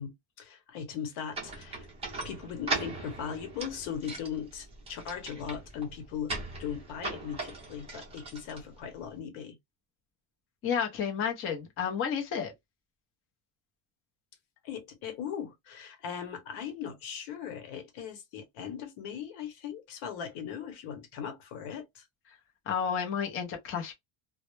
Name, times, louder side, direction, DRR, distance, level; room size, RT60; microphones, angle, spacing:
voice 1, 0.0-1.9 2.2-9.6 14.6-22.0, left 8 dB, 90° left, 1.0 m, -39 dB
sound 1, 1.3-9.2, right 3 dB, 15° right, 0.6 m, -39 dB
voice 2, 10.6-12.5 22.7-23.9, left 7 dB, 30° left, 0.5 m, -31 dB
2.0 x 2.0 x 3.0 m
cardioid pair, 165°, 48 cm